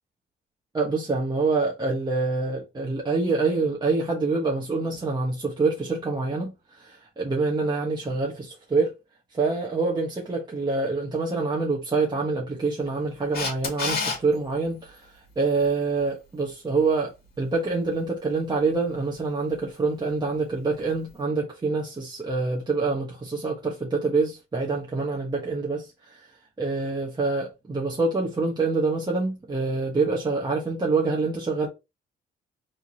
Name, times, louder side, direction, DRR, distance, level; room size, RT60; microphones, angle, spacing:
voice 1, 0.7-8.9 9.3-17.1 17.4-31.7, right 3 dB, 20° right, 1.2 m, -26 dB
Camera, 13.3-14.2 20.9-21.0, left 4 dB, 50° left, 2.4 m, -27 dB
4.6 x 3.7 x 2.7 m
cardioid pair, 90°, 20 cm